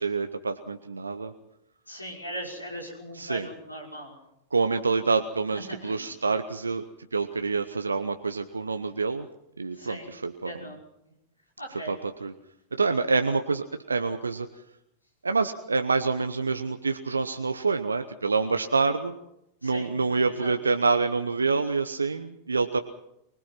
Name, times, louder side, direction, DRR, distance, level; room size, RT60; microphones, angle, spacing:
voice 1, 0.0-1.3 3.2-3.5 4.5-6.8 7.1-9.3 9.6-10.5 11.9-12.0 12.2-12.3 12.8-14.5 15.2-19.1 19.6-22.8, right 4 dB, 75° right, 8 dB, 0.9 m, -27 dB
voice 2, 1.9-4.1 5.7-6.0 9.7-10.1 10.4-10.8 11.6-11.9 19.6-20.5, equal, 85° left, 0 dB, 5.6 m, -39 dB
24.5 x 19.5 x 5.9 m, 0.82 s
figure-of-eight pair, 90°, 0 cm